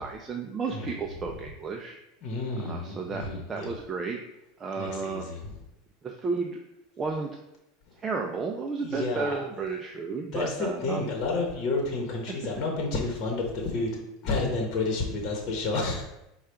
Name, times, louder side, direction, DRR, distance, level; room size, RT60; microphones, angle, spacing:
voice 1, 0.0-2.0 2.6-4.2 4.6-5.3 6.0-6.6 7.0-7.3 8.0-11.0, right 4 dB, 25° right, 1 dB, 0.4 m, -32 dB
voice 2, 2.2-3.8 4.8-5.5 8.8-9.4 10.3-13.9 14.2-16.0, left 3 dB, 45° left, 0 dB, 1.0 m, -30 dB
4.9 x 2.3 x 4.5 m, 0.87 s
supercardioid pair, 125°, 0 cm